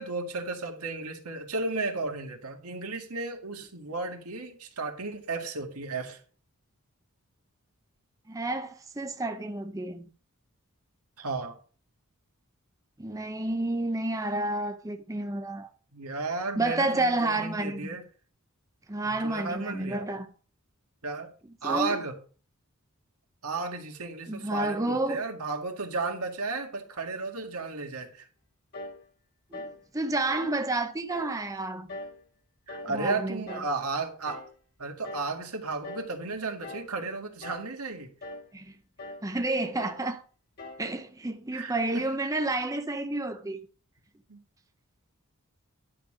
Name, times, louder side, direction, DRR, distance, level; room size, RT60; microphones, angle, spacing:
voice 1, 0.0-6.2 11.2-11.5 15.9-18.0 19.0-20.1 21.0-21.3 21.6-22.2 23.4-28.3 32.7-34.5 34.8-38.1 41.5-42.1 44.3-44.4, right 3 dB, 85° right, 1.9 m, -34 dB
voice 2, 8.3-10.1 13.0-15.7 16.6-18.0 18.9-20.3 21.6-22.0 24.3-25.2 29.5-32.0 32.8-33.6 38.5-38.7 39.2-40.2 40.8-43.6, right 2 dB, 15° right, 0.6 m, -30 dB
sound 1, 28.7-29.0 29.5-29.8 30.3-30.6 31.1-31.4 31.9-32.2 32.7-33.0 33.5-33.8 34.3-34.5 35.0-35.4 35.8-36.1 36.6-36.9 37.4-37.8 38.2-38.5 39.0-39.3 39.8-40.1 40.6-40.9, left 2 dB, 45° left, 1.8 m, -42 dB
10.5 x 6.6 x 4.9 m
head